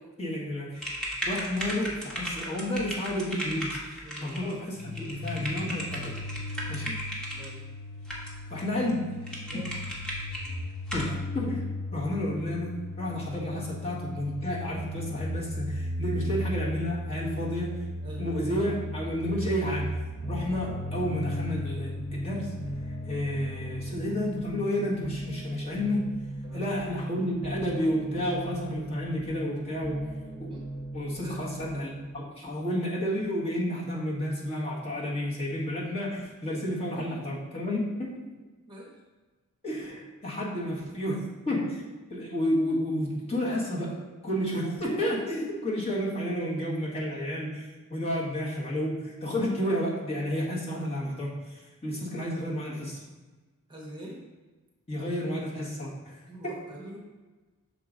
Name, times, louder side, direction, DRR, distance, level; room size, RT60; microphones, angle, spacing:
voice 1, 0.2-0.9 1.2-6.2 6.7-7.0 8.5-9.3 9.6-9.8 10.9-17.9 18.2-19.9 20.3-22.5 23.1-26.3 26.5-30.1 30.4-30.5 30.9-38.2 39.6-53.0 54.9-56.2 56.4-56.5, equal, 30° left, -6 dB, 1.4 m, -31 dB
sound 1, 0.8-7.5 8.1-8.6 8.9-9.0 9.3-10.5 10.9-11.1, equal, 5° left, 1.2 m, -36 dB
sound 2, 4.7-23.9, left 1 dB, 55° left, 0.5 m, -36 dB
voice 2, 7.3-7.6 9.5-9.7 17.2-17.5 18.0-18.4 26.4-26.7 30.5-30.7 31.2-31.5 37.1-37.3 38.7-38.9 53.7-54.3 56.3-57.0, right 1 dB, 20° right, -3 dB, 1.1 m, -44 dB
sound 3, 20.2-32.2, right 1 dB, 55° right, 0.8 m, -38 dB
6.7 x 4.7 x 3.8 m, 1.3 s
head